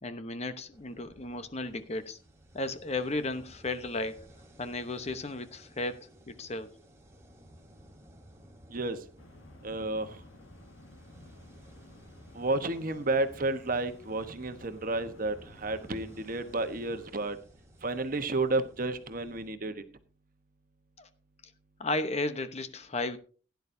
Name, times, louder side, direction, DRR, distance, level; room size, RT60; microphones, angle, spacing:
voice 1, 0.0-2.2 2.5-4.3 4.6-6.7 21.0-21.1 21.8-23.2, left 2 dB, 35° left, 0.9 m, -34 dB
sound 1, 0.7-19.5, equal, 15° right, 2.8 m, -57 dB
sound 2, 9.2-17.1, left 1 dB, 85° left, 1.7 m, -54 dB
voice 2, 9.6-10.2 12.3-17.4 17.8-19.7, right 2 dB, 45° right, 1.1 m, -31 dB
17.0 x 10.5 x 2.7 m
head